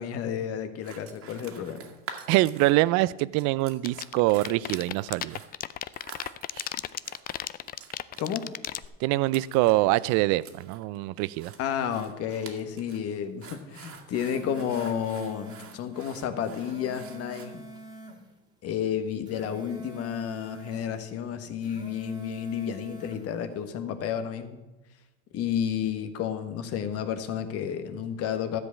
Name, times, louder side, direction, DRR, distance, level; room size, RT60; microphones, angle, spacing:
voice 1, 0.0-1.9 8.2-8.5 11.6-17.6 18.6-24.6 25.3-28.6, left 8 dB, 50° left, 9 dB, 1.4 m, -31 dB
sound 1, 0.8-3.0 3.3-17.5, right 6 dB, 45° right, 1.9 m, -47 dB
voice 2, 2.3-5.4 9.0-11.5, right 18 dB, 65° right, 19 dB, 0.5 m, -24 dB
sound 2, 3.7-8.9, left 12 dB, 30° left, 0.4 m, -33 dB
sound 3, 13.9-15.7 16.4-18.2 19.1-20.9 21.5-23.2, right 1 dB, 15° right, 2.0 m, -44 dB
13.0 x 5.2 x 8.2 m, 1.1 s
supercardioid pair, 115°, 30 cm